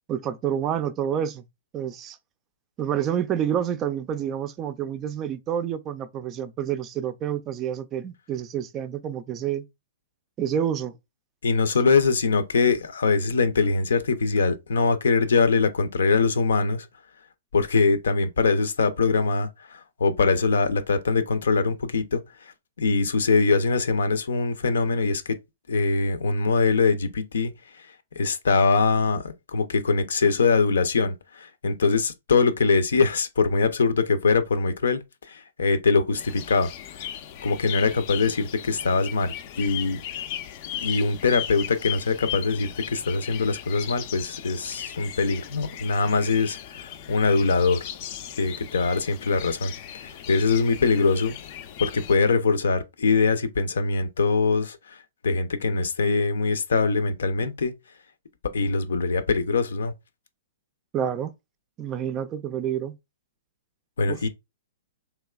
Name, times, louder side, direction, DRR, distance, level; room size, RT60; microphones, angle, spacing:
voice 1, 0.1-1.5 1.7-2.2 2.8-9.7 10.4-10.9 60.9-61.3 61.8-63.0 64.1-64.3, right 9 dB, 25° right, 0.4 m, -28 dB
voice 2, 11.4-16.9 17.5-22.2 22.8-25.2 25.7-27.5 28.2-35.0 35.3-36.7 37.4-40.0 40.8-47.8 48.4-49.7 50.0-51.4 51.8-54.8 55.2-57.7 58.5-59.9 64.0-64.3, left 4 dB, 85° left, 0.6 m, -23 dB
sound 1, 36.2-52.2, left 11 dB, 45° left, 0.5 m, -37 dB
3.3 x 3.0 x 2.2 m
hypercardioid pair, 145°, 0 cm